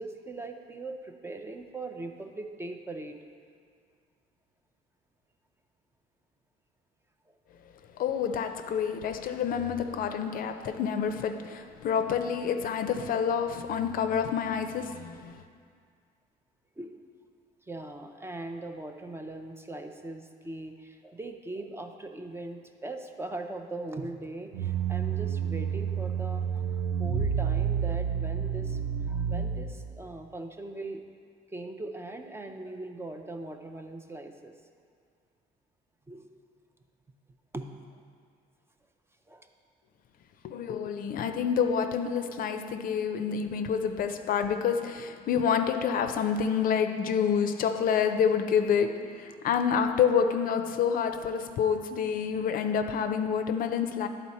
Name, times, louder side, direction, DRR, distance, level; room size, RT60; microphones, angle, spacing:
voice 1, 0.0-3.2 16.8-17.0 17.7-26.6 27.0-28.8 29.1-31.0 31.5-34.5 36.1-36.3 37.5-37.8 39.3-39.5, right 2 dB, 15° right, 5 dB, 0.4 m, -40 dB
voice 2, 8.0-15.4 40.4-54.1, left 7 dB, 55° left, 8 dB, 0.5 m, -28 dB
sound 1, 24.5-30.0, right 7 dB, 90° right, 0.5 m, -29 dB
9.7 x 4.0 x 4.2 m, 2.1 s
cardioid pair, 110°, 17 cm